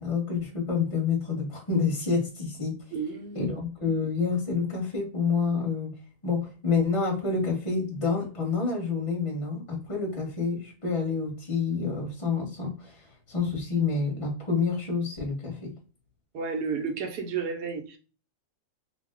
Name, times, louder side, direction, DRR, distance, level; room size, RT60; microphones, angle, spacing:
voice 1, 0.0-2.7 3.3-5.9 6.2-15.7, left 5 dB, 25° left, 0.8 m, -28 dB
voice 2, 2.9-3.6 16.3-18.0, right 5 dB, 90° right, 1.2 m, -32 dB
2.8 x 2.1 x 3.4 m
omnidirectional pair, 1.6 m